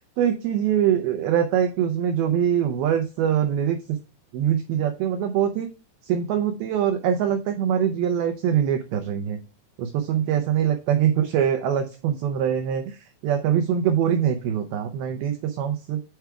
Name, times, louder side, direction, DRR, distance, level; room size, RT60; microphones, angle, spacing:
voice 1, 0.0-4.0 4.3-5.7 6.0-9.4 9.8-16.0, right 9 dB, 80° right, 6 dB, 2.2 m, -23 dB
7.8 x 4.7 x 4.6 m, 0.33 s
omnidirectional pair, 5.2 m